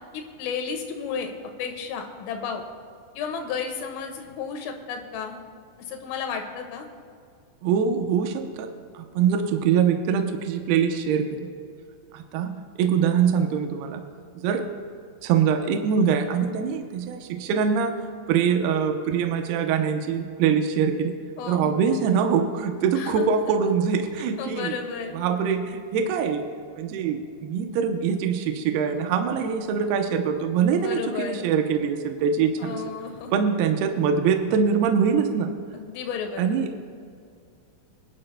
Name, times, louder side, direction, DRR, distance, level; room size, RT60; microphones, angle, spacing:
voice 1, 0.1-1.3 1.6-2.6 3.2-5.4 5.8-6.9 21.4-21.8 23.0-23.6 24.4-25.2 30.8-31.5 32.6-33.4 35.7-36.4, left 6 dB, 85° left, 3 dB, 3.8 m, -33 dB
voice 2, 7.6-11.5 12.1-14.0 14.4-14.7 15.2-18.0 18.3-21.1 21.5-24.8 25.1-26.4 26.8-32.8 33.3-35.5 36.4-36.7, right 7 dB, 85° right, 5 dB, 2.2 m, -23 dB
24.5 x 11.5 x 2.2 m, 2.3 s
omnidirectional pair, 5.6 m